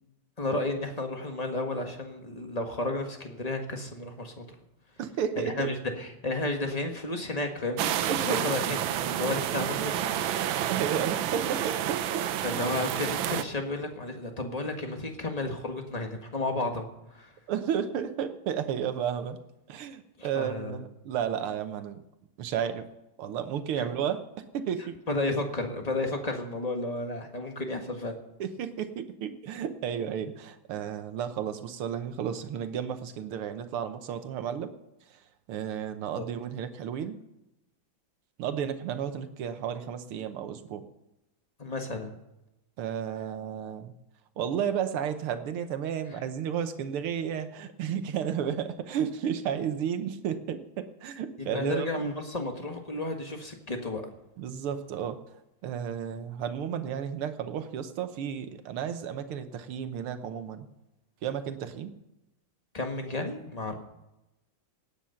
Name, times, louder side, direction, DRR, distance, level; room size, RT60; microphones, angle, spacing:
voice 1, 0.4-4.4 5.4-10.2 12.4-17.3 20.2-20.8 23.8-23.9 25.1-28.1 36.2-36.3 41.6-42.1 51.4-54.0 62.7-63.8, left 2 dB, 20° left, 4 dB, 1.4 m, -32 dB
voice 2, 5.0-5.7 8.1-8.6 9.3-9.4 10.7-12.7 17.5-19.4 19.7-22.0 22.4-22.9 23.2-25.0 28.4-34.7 35.1-37.2 38.4-40.9 42.8-43.9 44.4-52.1 54.4-55.2 55.6-60.7 61.2-62.0, right 8 dB, 90° right, 10 dB, 1.9 m, -33 dB
sound 1, 7.8-13.4, right 10 dB, 70° right, 1.4 m, -29 dB
17.5 x 9.3 x 5.7 m, 0.92 s
omnidirectional pair, 2.4 m